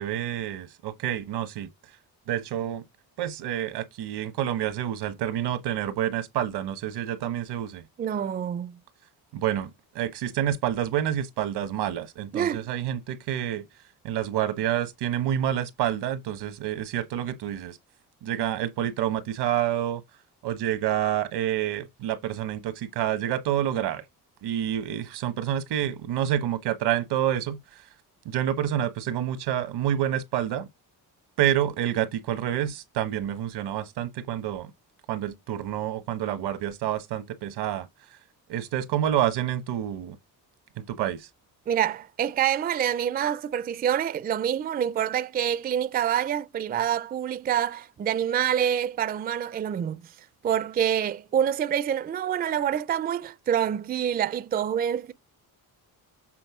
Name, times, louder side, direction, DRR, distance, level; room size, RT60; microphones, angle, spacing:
voice 1, 0.0-1.7 2.3-2.8 3.2-7.8 9.3-13.6 14.0-17.8 18.2-20.0 20.4-24.0 24.4-27.6 28.2-30.7 31.4-34.7 35.1-37.9 38.5-40.2 40.8-41.3, right 11 dB, 85° right, 1.2 m, -28 dB
voice 2, 8.0-8.8 12.3-12.6 41.7-50.0 50.4-55.1, right 9 dB, 25° right, 0.3 m, -26 dB
7.6 x 4.1 x 4.8 m
cardioid pair, 125°, 38 cm